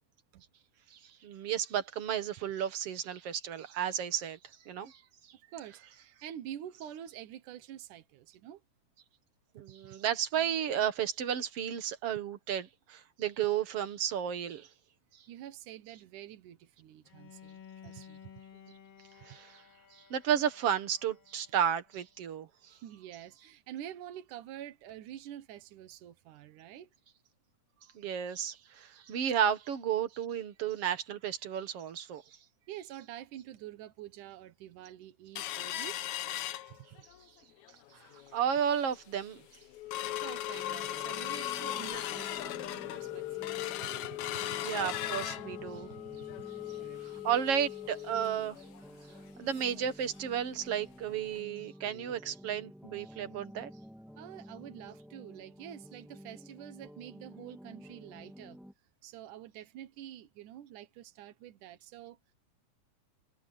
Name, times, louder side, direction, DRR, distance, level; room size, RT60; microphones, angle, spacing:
voice 1, 0.9-4.4 4.7-5.0 9.6-14.7 19.2-19.6 19.9-22.8 27.9-32.2 37.9-38.1 38.3-39.4 44.6-45.9 47.0-48.6 49.4-53.7, right 9 dB, 55° right, 2.2 m, -33 dB
voice 2, 5.5-8.6 15.3-18.3 22.7-26.9 32.7-36.0 36.7-36.9 40.2-43.5 43.8-44.4 45.5-45.6 45.9-46.0 46.8-47.1 54.2-58.6 59.0-62.3, right 11 dB, 85° right, 2.7 m, -47 dB
Bowed string instrument, 17.0-22.0, left 8 dB, 55° left, 2.6 m, -55 dB
sound 1, 35.4-37.2 37.6-37.7 38.1-38.4 38.9-39.0 39.3-49.9 50.2-50.3 50.7-50.8 51.4-51.5, left 14 dB, 75° left, 2.1 m, -38 dB
sound 2, 40.5-58.7, equal, ahead, 1.6 m, -51 dB
omnidirectional pair, 3.5 m